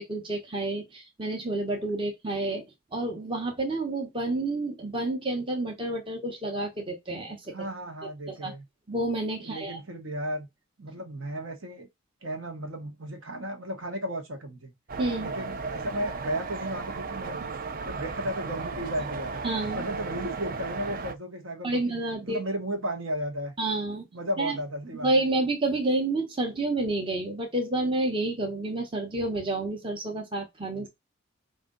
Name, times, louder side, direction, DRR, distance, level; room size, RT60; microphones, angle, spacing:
voice 1, 0.0-2.6 2.9-7.7 8.3-8.5 8.9-9.8 15.0-15.3 19.4-19.8 21.6-22.4 23.6-24.1 24.4-24.6 24.9-30.9, right 2 dB, 25° right, 0.9 m, -29 dB
voice 2, 7.5-8.6 9.4-10.5 10.8-11.9 12.2-14.7 15.2-19.4 19.7-21.9 22.2-23.5 24.1-25.1 30.7-30.9, equal, 65° right, 1.3 m, -34 dB
sound 1, 14.9-21.1, right 4 dB, 40° right, 0.5 m, -35 dB
5.0 x 2.6 x 3.7 m
head